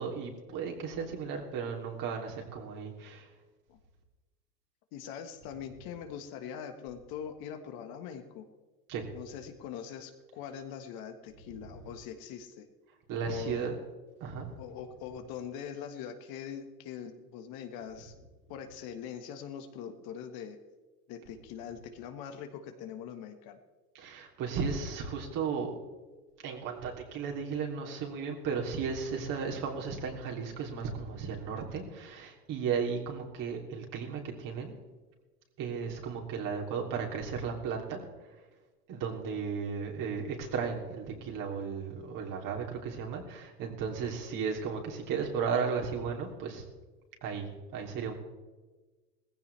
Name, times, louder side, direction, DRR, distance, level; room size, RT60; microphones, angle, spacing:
voice 1, 0.0-3.3 8.9-9.1 11.5-11.7 13.1-13.8 14.2-14.6 23.9-25.8 26.4-34.7 35.6-38.3 38.9-46.6 47.2-48.1, right 6 dB, 45° right, 0 dB, 3.1 m, -35 dB
voice 2, 4.9-8.4 9.1-12.7 13.1-13.7 14.6-18.2 18.5-20.6 21.1-23.6, left 8 dB, 50° left, 7 dB, 1.6 m, -42 dB
18.0 x 15.5 x 3.4 m, 1.2 s
hypercardioid pair, 105°, 46 cm